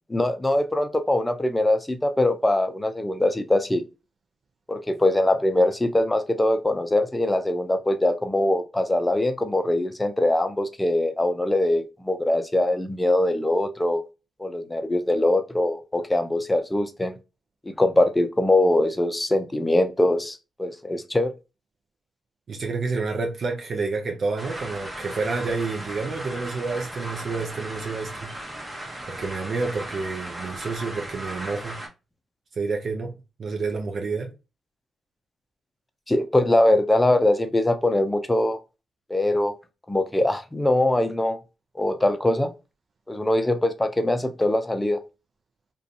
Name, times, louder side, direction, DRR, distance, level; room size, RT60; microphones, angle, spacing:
voice 1, 0.1-3.8 4.7-14.0 14.4-17.1 17.7-21.3 36.1-38.6 39.1-39.5 39.9-41.4 41.8-42.5 43.1-45.0, left 1 dB, 15° left, 0.5 m, -22 dB
voice 2, 22.5-28.3 29.1-31.8 32.6-33.1 33.4-34.3, right 4 dB, 60° right, 0.5 m, -29 dB
sound 1, 24.4-31.9, right 1 dB, 25° right, 0.9 m, -37 dB
2.5 x 2.3 x 2.5 m
supercardioid pair, 50°, 0 cm